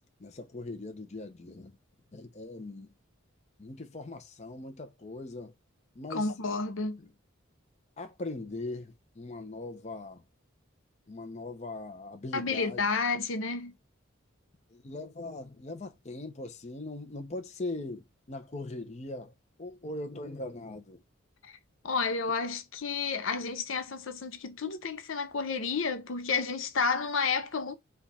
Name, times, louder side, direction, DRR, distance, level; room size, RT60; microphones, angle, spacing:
voice 1, 0.2-1.8 2.1-2.9 3.6-5.5 5.9-6.3 7.0-7.1 8.0-10.2 11.1-12.8 14.7-19.3 19.6-21.0, left 2 dB, 35° left, 0.6 m, -40 dB
voice 2, 6.1-7.0 12.3-13.7 21.4-21.6 21.8-27.7, left 4 dB, 70° left, 0.6 m, -31 dB
4.5 x 2.4 x 4.0 m
head